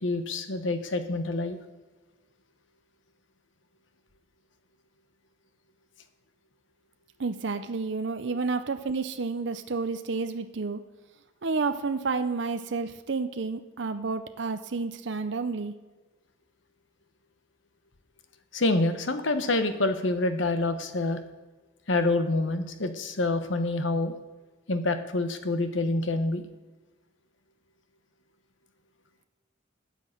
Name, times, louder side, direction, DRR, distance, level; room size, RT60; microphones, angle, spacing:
voice 1, 0.0-1.6 18.5-21.2 21.9-24.2 24.7-26.4, left 2 dB, 80° left, 9 dB, 1.1 m, -27 dB
voice 2, 7.2-10.8 11.4-15.7, right 4 dB, 70° right, 9 dB, 0.6 m, -30 dB
9.5 x 8.3 x 7.8 m, 1.2 s
head